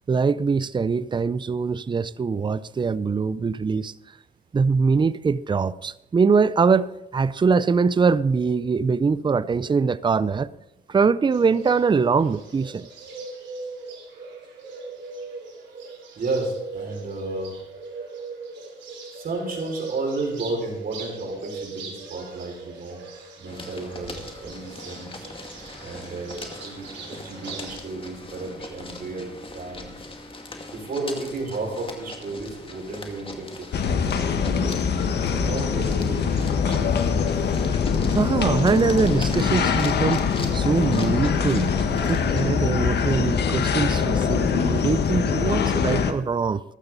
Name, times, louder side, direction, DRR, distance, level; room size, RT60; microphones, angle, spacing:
voice 1, 0.1-3.9 4.5-10.5 10.9-12.9 38.1-40.2 40.5-41.7 42.1-46.6, right 5 dB, 25° right, 0.5 m, -22 dB
Bird, 11.3-27.8, right 4 dB, 75° right, 4.2 m, -40 dB
voice 2, 15.8-17.6 19.1-23.0 23.4-24.1 24.4-25.2 25.8-29.9 30.7-34.8 35.4-37.5, right 3 dB, 50° right, 5.6 m, -33 dB
sound 1, 23.4-42.5, left 2 dB, 30° left, 2.4 m, -40 dB
sound 2, 33.7-46.1, left 6 dB, 65° left, 1.4 m, -23 dB
14.5 x 12.5 x 4.1 m
supercardioid pair, 70°, 19 cm